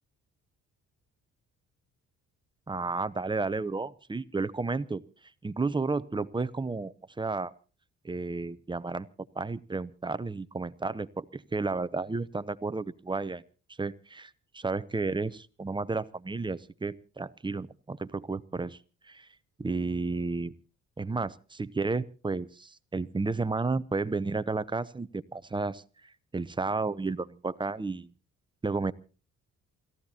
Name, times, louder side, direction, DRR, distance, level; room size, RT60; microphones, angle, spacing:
voice 1, 2.7-5.0 5.4-7.5 8.0-9.1 9.4-13.4 13.8-18.8 19.1-19.3 19.6-20.5 21.0-25.8 26.3-28.1 28.6-28.9, right 3 dB, 15° right, 15 dB, 0.7 m, -32 dB
28.0 x 15.0 x 2.8 m, 0.36 s
cardioid pair, 90°, 30 cm